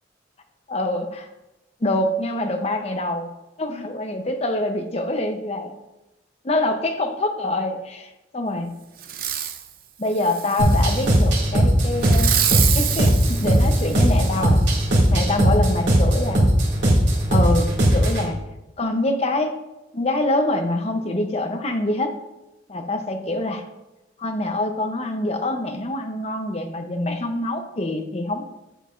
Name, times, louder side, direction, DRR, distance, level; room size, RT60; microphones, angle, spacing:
voice 1, 0.7-1.3 1.8-3.3 3.6-5.8 6.4-8.8 10.0-12.4 12.7-14.6 15.1-16.5 17.3-18.4 18.8-19.6 19.9-22.1 22.7-23.6 24.2-28.4, left 1 dB, 35° left, 6 dB, 0.7 m, -25 dB
Fireworks, 9.0-9.6 10.2-11.2 12.0-14.4 14.9-15.0, right 10 dB, 50° right, 0.6 m, -27 dB
sound 1, 10.6-18.3, right 1 dB, 90° right, 2.2 m, -18 dB
8.0 x 7.6 x 2.5 m, 0.97 s
head